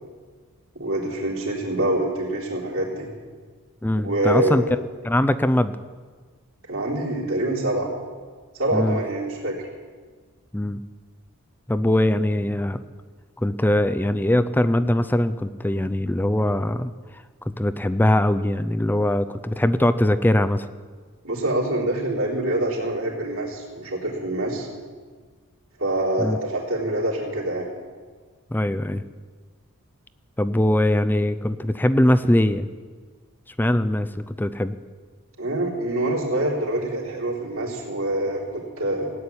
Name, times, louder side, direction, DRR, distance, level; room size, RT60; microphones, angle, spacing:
voice 1, 0.7-3.1 4.0-4.7 6.7-7.9 8.6-9.7 21.2-24.7 25.8-27.7 35.4-39.1, right 1 dB, 70° right, -3 dB, 3.7 m, -25 dB
voice 2, 3.8-4.6 5.0-5.8 8.7-9.0 10.5-10.8 11.7-12.8 13.4-20.7 26.2-26.4 28.5-29.0 30.4-32.7 33.6-34.8, left 1 dB, 10° left, 11 dB, 0.5 m, -21 dB
17.0 x 8.6 x 9.6 m, 1.5 s
head